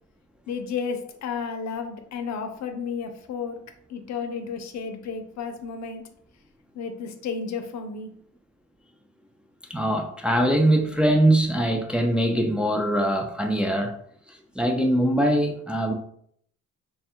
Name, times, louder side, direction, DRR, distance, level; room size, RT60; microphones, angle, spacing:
voice 1, 0.5-3.6 3.9-6.0 6.7-8.1, left 5 dB, 65° left, 7 dB, 0.6 m, -32 dB
voice 2, 9.7-14.0 14.3-15.9, right 1 dB, 5° right, 2 dB, 0.5 m, -22 dB
3.3 x 2.3 x 4.4 m, 0.65 s
cardioid pair, 90°, 30 cm